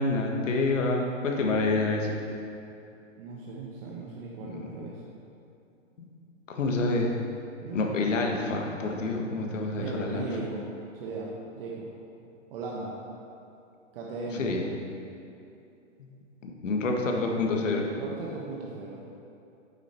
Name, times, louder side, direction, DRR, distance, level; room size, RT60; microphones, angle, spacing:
voice 1, 0.0-2.2 4.5-4.8 6.5-7.2 7.7-10.3 14.4-14.6 16.0-16.1 16.4-17.9, left 3 dB, 75° left, 1 dB, 1.6 m, -27 dB
voice 2, 3.2-5.0 7.6-8.2 9.8-10.6 10.9-11.9 12.5-13.0 13.9-14.5 17.9-19.0, right 3 dB, 45° right, -3 dB, 1.3 m, -37 dB
9.2 x 7.0 x 4.5 m, 2.6 s
hypercardioid pair, 135°, 38 cm